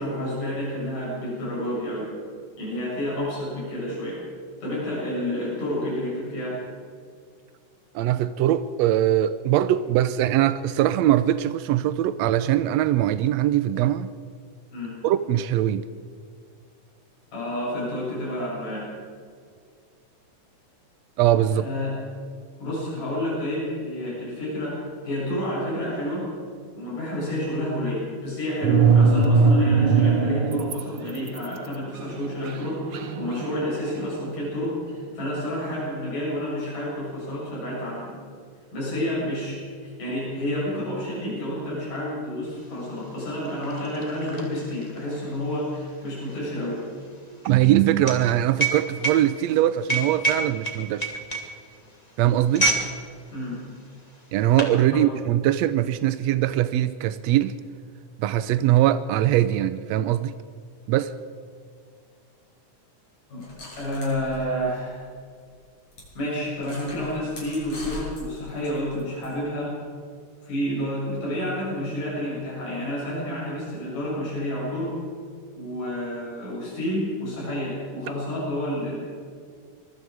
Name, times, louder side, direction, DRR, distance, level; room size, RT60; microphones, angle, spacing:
voice 1, 0.0-2.1 2.6-4.2 4.6-6.6 14.7-14.9 17.3-18.9 21.5-21.9 22.6-24.8 25.0-26.3 26.8-38.1 38.7-46.8 53.3-53.6 54.9-55.0 63.3-63.4 63.8-65.0 66.2-69.7 70.4-74.9 75.5-79.0, left 1 dB, 75° left, 9.2 m, -29 dB
voice 2, 7.9-14.1 15.0-15.9 21.2-21.6 47.4-51.1 52.2-52.7 54.3-57.5 58.2-60.3 60.9-61.1, right 12 dB, 80° right, 1.5 m, -21 dB
sound 1, 28.6-30.8 31.1-34.5, right 4 dB, 65° right, 1.1 m, -21 dB
sound 2, 42.6-42.7 42.9-52.9 53.2-53.5 54.1-54.8, right 3 dB, 15° left, 2.3 m, -28 dB
sound 3, 63.4-65.2 65.5-65.6 65.9-66.1 66.5-69.3, equal, 45° left, 7.7 m, -41 dB
25.5 x 22.5 x 4.8 m
omnidirectional pair, 3.7 m